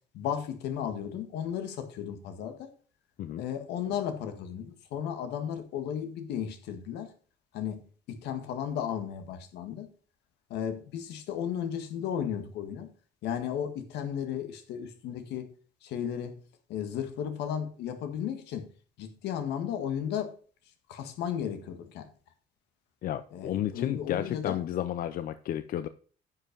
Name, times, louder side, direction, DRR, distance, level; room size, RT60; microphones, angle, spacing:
voice 1, 0.1-2.7 3.4-7.1 7.5-7.8 8.1-9.9 10.5-12.9 13.2-15.5 15.8-16.4 16.7-18.7 19.0-20.3 20.9-22.1 23.3-24.6, left 9 dB, 85° left, 8 dB, 1.7 m, -34 dB
voice 2, 23.0-25.9, left 11 dB, 60° left, 12 dB, 0.6 m, -32 dB
9.7 x 5.6 x 5.2 m, 0.41 s
cardioid pair, 110°, 17 cm